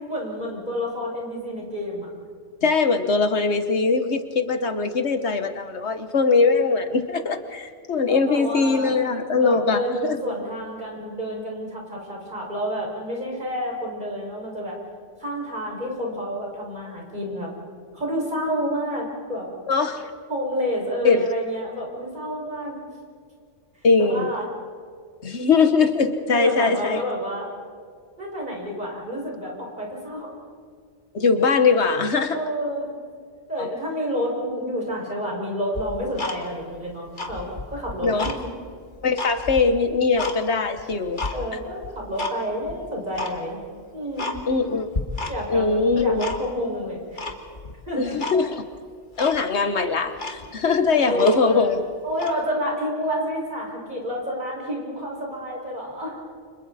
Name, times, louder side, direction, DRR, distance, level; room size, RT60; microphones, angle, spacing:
voice 1, 0.1-2.1 8.1-9.0 9.4-14.8 15.2-17.5 17.9-19.5 20.3-22.8 24.0-24.5 26.3-27.5 28.2-30.4 32.3-32.9 33.5-38.5 41.3-43.6 43.9-44.4 45.3-45.7 46.0-47.0 47.9-48.2 50.9-51.7 52.0-56.2, equal, 40° right, -2 dB, 5.9 m, -29 dB
voice 2, 2.6-10.2 19.7-20.1 21.0-21.3 23.8-24.3 25.2-27.0 31.1-32.4 33.6-33.7 38.0-38.3 39.0-41.3 44.5-44.9 45.5-46.2 48.0-48.6 49.2-51.8, left 4 dB, 70° left, 8 dB, 1.4 m, -21 dB
Tick-tock, 35.7-36.8 37.1-38.4 38.8-40.4 40.8-41.4 41.8-42.4 42.6-42.7 43.1-43.4 43.8-43.9 44.2-44.7 44.9-45.6 45.9-46.7 47.2-47.7 48.2-48.4 48.7-48.8 49.2-49.4 49.9-50.0 50.2-51.7 52.1-52.4, left 3 dB, 45° left, 1.9 m, -31 dB
30.0 x 26.0 x 4.2 m, 2.1 s
omnidirectional pair, 1.2 m